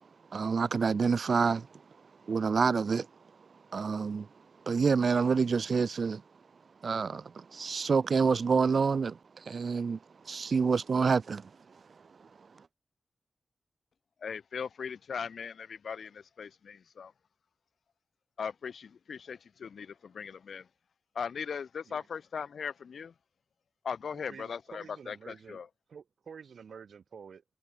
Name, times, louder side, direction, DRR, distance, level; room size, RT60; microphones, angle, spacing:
voice 1, 0.3-1.7 2.3-3.1 3.7-4.3 4.7-6.2 6.8-10.0 10.2-11.5, right 5 dB, 60° right, 0.4 m, -27 dB
voice 2, 14.2-17.1 18.4-20.7 21.1-23.1 23.8-25.7, left 6 dB, 75° left, 1.3 m, -39 dB
voice 3, 24.1-25.6 25.9-27.4, right 6 dB, 80° right, 1.5 m, -49 dB
wide cardioid pair, 105°, 0 cm